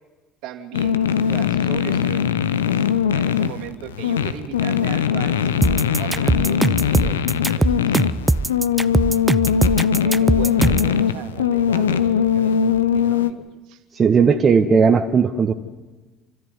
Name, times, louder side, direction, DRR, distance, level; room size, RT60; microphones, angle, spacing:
voice 1, 0.4-2.4 2.8-5.6 6.0-8.0 10.0-13.8, right 10 dB, 65° right, 5 dB, 2.8 m, -37 dB
sound 1, 0.7-13.3, left 8 dB, 85° left, 0.9 m, -20 dB
sound 2, 5.6-10.9, right 2 dB, 15° right, 0.8 m, -20 dB
voice 2, 13.9-15.5, right 5 dB, 35° right, 5 dB, 1.6 m, -16 dB
29.0 x 13.5 x 9.7 m, 1.2 s
hypercardioid pair, 60°, 0 cm